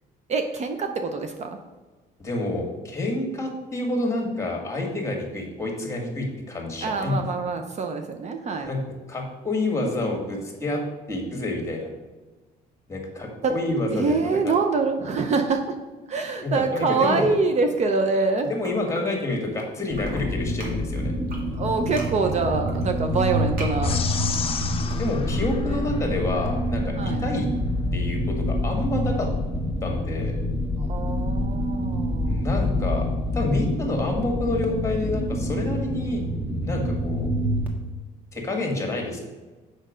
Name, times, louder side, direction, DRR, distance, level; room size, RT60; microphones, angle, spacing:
voice 1, 0.3-1.6 6.8-8.7 13.4-13.5 13.9-15.8 16.1-18.5 21.5-24.0 25.6-26.3 27.0-27.2 30.8-32.4, right 4 dB, 40° right, 6 dB, 0.7 m, -25 dB
voice 2, 2.2-7.2 8.6-8.8 9.1-10.8 11.1-11.9 12.9-14.1 14.4-14.5 16.4-17.3 18.4-21.1 25.0-27.5 27.9-29.3 29.8-30.4 32.3-33.1 33.3-36.2 36.6-37.3 38.3-39.2, left 2 dB, 15° left, 1 dB, 1.8 m, -28 dB
sound 1, 18.0-19.6 19.9-25.5, right 1 dB, 60° right, 1.9 m, -42 dB
sound 2, 19.9-37.7, left 1 dB, 10° right, 1.3 m, -27 dB
sound 3, 23.8-26.5, left 6 dB, 35° left, 0.7 m, -33 dB
6.5 x 5.3 x 5.0 m, 1.3 s
cardioid pair, 110°, 17 cm